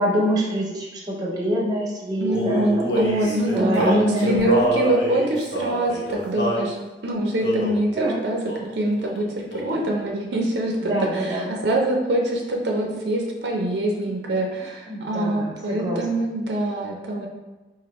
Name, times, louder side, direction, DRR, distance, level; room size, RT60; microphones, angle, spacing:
voice 1, 0.0-4.6 8.0-8.2 10.9-11.5 14.9-16.0, equal, 20° right, -4 dB, 0.8 m, -25 dB
voice 2, 2.2-6.8 7.0-8.4 8.7-17.3, right 1 dB, 70° right, -1 dB, 0.5 m, -24 dB
Male singing, 2.3-6.7 7.4-7.8 8.5-8.7 9.0-10.0, equal, 70° left, 0.8 m, -26 dB
4.2 x 2.5 x 3.0 m, 1.2 s
head